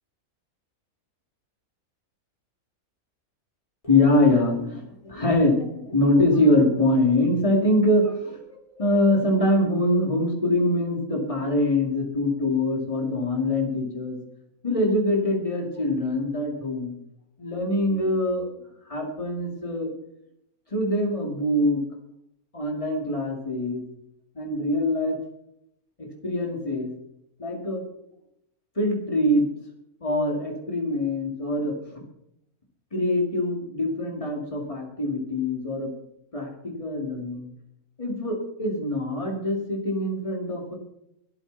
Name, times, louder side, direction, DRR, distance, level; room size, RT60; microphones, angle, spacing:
voice 1, 3.8-14.2 14.6-16.9 17.4-18.5 18.9-19.9 20.7-21.8 22.5-23.8 24.3-25.2 26.0-26.9 27.4-27.8 28.8-29.5 30.0-31.7 32.9-35.9 36.3-37.5 38.0-40.8, left 1 dB, 20° left, 1 dB, 2.7 m, -24 dB
23.5 x 8.2 x 4.1 m, 0.78 s
omnidirectional pair, 1.5 m